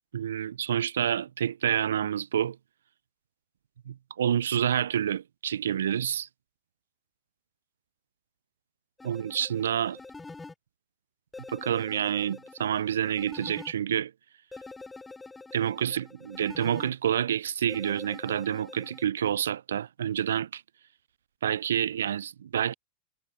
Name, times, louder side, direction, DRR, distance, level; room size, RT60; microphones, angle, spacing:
voice 1, 0.1-2.6 3.9-6.3 9.0-10.0 11.5-14.1 15.5-20.6 21.4-22.7, right 9 dB, 80° right, 0.3 m, -28 dB
sound 1, 9.0-10.5 11.3-13.7 14.5-16.9 17.7-19.1, left 3 dB, 10° left, 2.8 m, -45 dB
hypercardioid pair, 95°, 0 cm